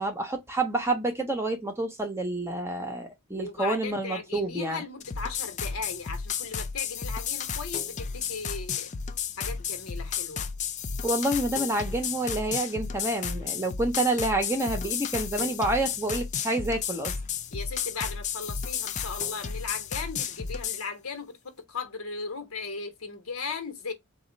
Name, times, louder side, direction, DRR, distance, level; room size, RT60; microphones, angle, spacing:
voice 1, 0.0-4.8 11.0-17.1, right 2 dB, 10° right, 0.8 m, -28 dB
voice 2, 3.3-8.9 9.4-10.5 17.5-23.9, left 4 dB, 75° left, 1.2 m, -37 dB
sound 1, 5.0-20.9, left 7 dB, 35° left, 0.4 m, -33 dB
4.2 x 2.4 x 4.0 m
head